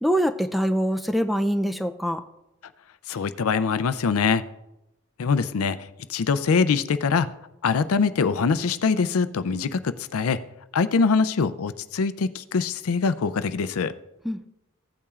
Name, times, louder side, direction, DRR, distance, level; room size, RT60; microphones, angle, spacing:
voice 1, 0.0-2.2 14.2-14.5, equal, ahead, 8 dB, 0.4 m, -24 dB
voice 2, 3.1-4.4 5.2-5.8 6.1-7.3 7.6-10.4 10.7-13.9, left 5 dB, 90° left, 13 dB, 0.5 m, -23 dB
15.5 x 8.6 x 2.4 m, 0.93 s
head